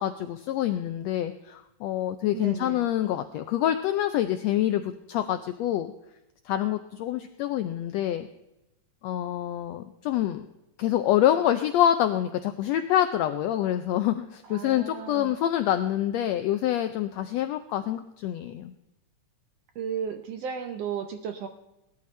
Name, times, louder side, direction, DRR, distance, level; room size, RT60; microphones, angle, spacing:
voice 1, 0.0-5.9 6.5-8.3 9.0-10.4 10.8-18.7, left 11 dB, 80° left, 9 dB, 1.5 m, -26 dB
voice 2, 2.3-2.9 14.5-15.4 19.7-21.5, right 7 dB, 70° right, 6 dB, 1.5 m, -34 dB
18.5 x 13.0 x 3.2 m, 0.94 s
omnidirectional pair, 3.6 m